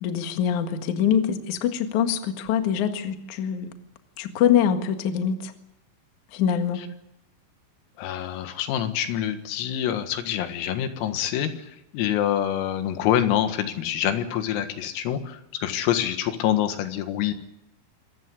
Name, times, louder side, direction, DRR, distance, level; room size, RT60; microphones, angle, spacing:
voice 1, 0.0-3.7 4.2-5.5 6.3-6.8, left 8 dB, 60° left, 6 dB, 2.1 m, -24 dB
voice 2, 8.0-11.7 11.9-17.3, left 11 dB, 90° left, 8 dB, 4.4 m, -26 dB
26.5 x 14.5 x 9.8 m, 0.86 s
omnidirectional pair, 5.9 m